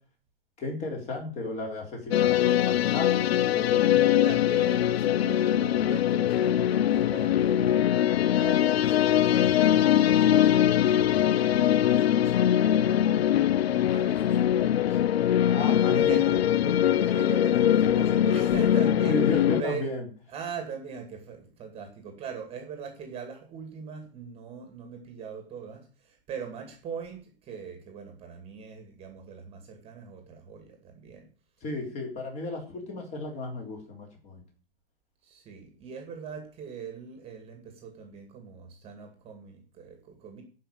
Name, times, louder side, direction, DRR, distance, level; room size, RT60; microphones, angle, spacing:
voice 1, 0.6-4.3 15.5-16.7 19.1-20.0 31.6-34.4, left 2 dB, 20° left, 2 dB, 3.6 m, -34 dB
sound 1, 2.1-19.6, left 11 dB, 85° left, 0.5 m, -22 dB
voice 2, 4.2-15.0 15.4-16.3 17.0-19.9 20.3-31.3 35.2-40.4, right 6 dB, 20° right, 5 dB, 2.2 m, -41 dB
12.0 x 5.6 x 8.8 m, 0.40 s
hypercardioid pair, 155°, 30 cm